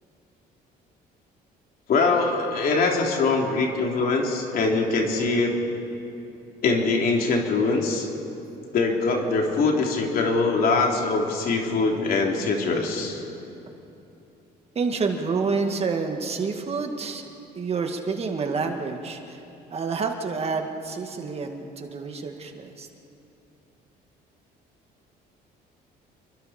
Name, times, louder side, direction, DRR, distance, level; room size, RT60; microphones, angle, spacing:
voice 1, 1.9-5.6 6.6-8.1 8.7-13.2, left 3 dB, 60° left, 0 dB, 3.4 m, -23 dB
voice 2, 14.8-17.2 17.6-19.4 19.7-22.9, right 4 dB, 35° right, 4 dB, 2.0 m, -28 dB
29.5 x 23.0 x 4.4 m, 2.8 s
cardioid pair, 110°, 17 cm